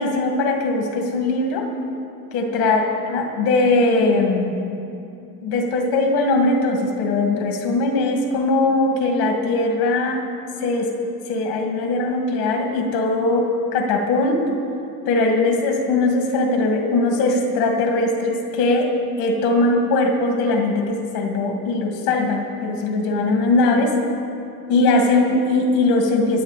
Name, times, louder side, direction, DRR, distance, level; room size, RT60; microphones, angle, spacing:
voice 1, 0.0-1.7 2.3-2.8 3.1-4.6 5.4-10.2 10.6-10.9 11.3-14.4 15.1-23.9 24.7-26.4, left 2 dB, 80° left, 2 dB, 2.2 m, -20 dB
23.5 x 8.0 x 4.1 m, 2.7 s
cardioid pair, 120°, 42 cm